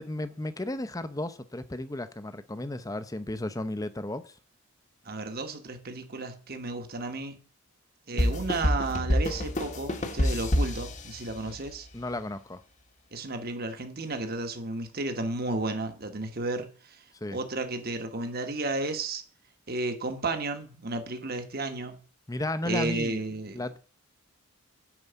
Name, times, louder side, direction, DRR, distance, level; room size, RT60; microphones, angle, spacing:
voice 1, 0.0-4.4 11.4-11.6 11.9-12.6 17.2-17.4 22.3-23.2 23.5-23.8, left 1 dB, 15° left, 0.6 m, -34 dB
voice 2, 5.0-7.4 8.1-11.9 13.1-17.0 17.3-19.2 19.7-22.0 22.6-23.6, right 2 dB, 45° right, 1.3 m, -33 dB
sound 1, 8.2-11.8, equal, 35° left, 1.0 m, -27 dB
11.0 x 4.7 x 8.0 m
head